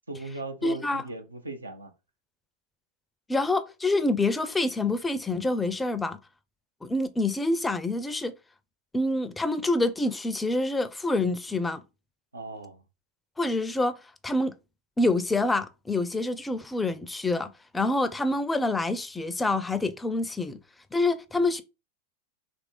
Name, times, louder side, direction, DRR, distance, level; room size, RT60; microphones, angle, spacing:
voice 1, 0.1-1.9 12.3-12.8, right 2 dB, 90° right, 0.5 m, -38 dB
voice 2, 0.6-1.0 3.3-6.2 6.8-8.3 8.9-11.8 13.4-14.5 15.0-20.6 20.9-21.6, left 2 dB, 10° left, 0.4 m, -27 dB
3.0 x 2.5 x 3.4 m
figure-of-eight pair, 90°, 0 cm